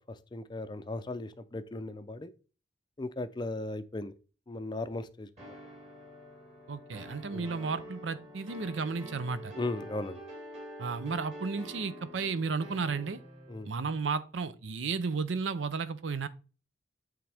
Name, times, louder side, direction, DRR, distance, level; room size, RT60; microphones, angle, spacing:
voice 1, 0.3-2.3 3.0-4.1 4.5-5.5 7.3-7.5 9.6-10.2 13.5-13.7, left 2 dB, 25° left, 0.4 m, -37 dB
sound 1, 5.4-13.6, equal, 35° right, 2.6 m, -47 dB
voice 2, 6.7-9.5 10.8-13.2 13.6-16.3, right 4 dB, 85° right, 0.6 m, -33 dB
8.7 x 3.7 x 3.4 m
head